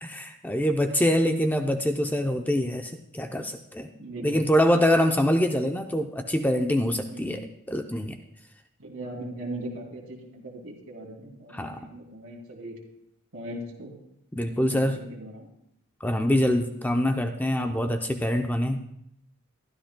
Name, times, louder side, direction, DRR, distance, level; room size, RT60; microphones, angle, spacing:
voice 1, 0.0-3.9 4.2-7.4 7.7-8.2 11.5-11.8 14.3-15.0 16.0-18.8, equal, 10° left, 5 dB, 0.5 m, -25 dB
voice 2, 4.0-4.8 7.1-7.5 8.8-12.8 13.3-14.0 14.5-15.5, right 1 dB, 60° right, -1 dB, 2.7 m, -39 dB
22.0 x 12.5 x 2.2 m, 0.76 s
head